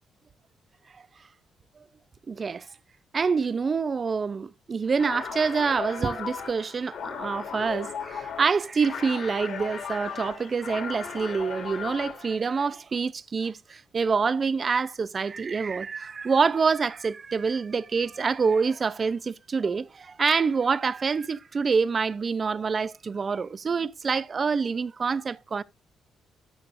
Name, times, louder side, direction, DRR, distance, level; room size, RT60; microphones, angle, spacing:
voice 1, 2.3-2.7 3.1-25.6, right 5 dB, 35° right, 0.4 m, -26 dB
sound 1, 4.9-12.4, left 6 dB, 65° left, 2.6 m, -36 dB
12.5 x 7.0 x 2.6 m
cardioid pair, 120°, 0 cm